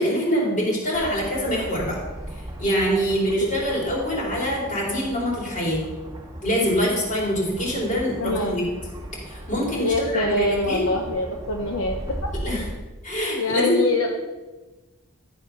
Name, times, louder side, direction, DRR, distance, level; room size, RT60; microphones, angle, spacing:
voice 1, 0.0-2.0 2.6-5.8 6.4-8.7 9.3-10.8 12.4-12.7 13.0-13.8, equal, 35° left, -4 dB, 4.4 m, -24 dB
sound 1, 0.9-12.7, right 1 dB, 20° right, 2.1 m, -37 dB
voice 2, 8.2-8.6 9.8-12.0 13.4-14.1, left 2 dB, 70° left, 1 dB, 1.2 m, -24 dB
14.0 x 8.4 x 5.7 m, 1.2 s
head